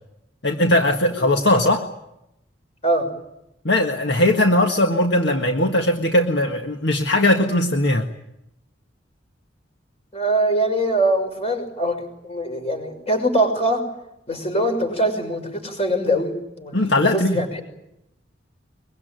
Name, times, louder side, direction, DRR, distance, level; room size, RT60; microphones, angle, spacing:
voice 1, 0.4-1.8 3.7-8.1 16.7-17.4, left 1 dB, 60° left, 3 dB, 1.8 m, -19 dB
voice 2, 10.1-13.8 14.3-17.6, right 1 dB, 30° left, 5 dB, 6.3 m, -23 dB
23.0 x 23.0 x 9.4 m, 0.84 s
head